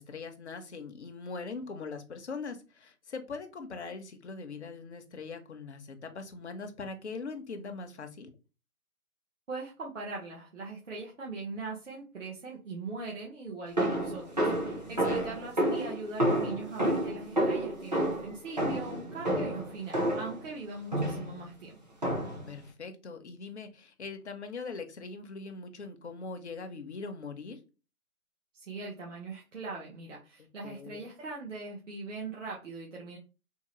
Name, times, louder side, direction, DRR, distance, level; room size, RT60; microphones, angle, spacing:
voice 1, 0.0-8.3 15.0-15.3 22.5-27.6 30.6-31.1, left 4 dB, 50° left, 6 dB, 0.6 m, -41 dB
voice 2, 9.5-22.0 28.5-33.2, right 3 dB, 55° right, -3 dB, 1.0 m, -41 dB
sound 1, 13.8-20.4 20.9-21.4 22.0-22.5, right 1 dB, 30° right, 0.7 m, -30 dB
3.6 x 2.1 x 3.0 m, 0.32 s
hypercardioid pair, 165°, 44 cm